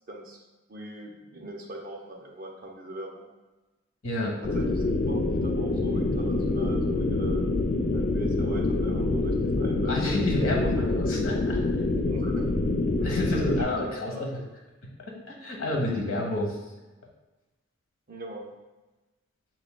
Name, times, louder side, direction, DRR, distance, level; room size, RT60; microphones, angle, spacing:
voice 1, 0.1-0.4 0.7-3.3 4.5-7.4 7.9-10.0 10.6-10.7 12.0-12.5 13.0-13.1 13.6-14.5 18.1-18.5, right 1 dB, 45° right, 0 dB, 0.7 m, -40 dB
voice 2, 4.0-4.4 9.9-11.6 13.0-14.3 14.8-16.6, left 1 dB, 75° left, -1 dB, 1.1 m, -29 dB
sound 1, 4.4-13.6, left 2 dB, 45° left, 0.4 m, -26 dB
6.1 x 3.9 x 2.2 m, 1.1 s
head